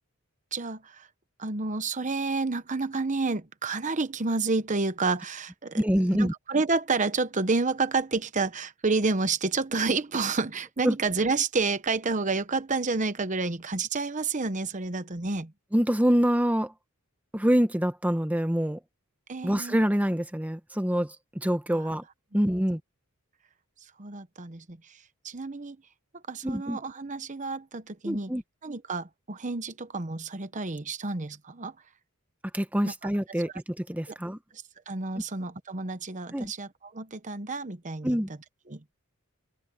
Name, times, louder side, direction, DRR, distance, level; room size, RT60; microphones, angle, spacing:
voice 1, 0.5-1.1 1.4-15.5 19.3-19.8 21.7-21.8 24.0-24.8 25.2-25.8 26.3-28.3 28.6-31.7 32.8-32.9 33.4-33.5 34.1-34.2 34.9-38.2 38.7-38.8, right 3 dB, 35° right, 1.0 m, -29 dB
voice 2, 5.7-6.3 10.8-11.0 15.7-16.7 17.3-18.8 19.4-22.0 22.3-22.8 26.4-26.8 28.0-28.4 32.5-33.5 33.8-34.4 36.3-36.5 38.0-38.3, equal, 5° right, 0.9 m, -25 dB
head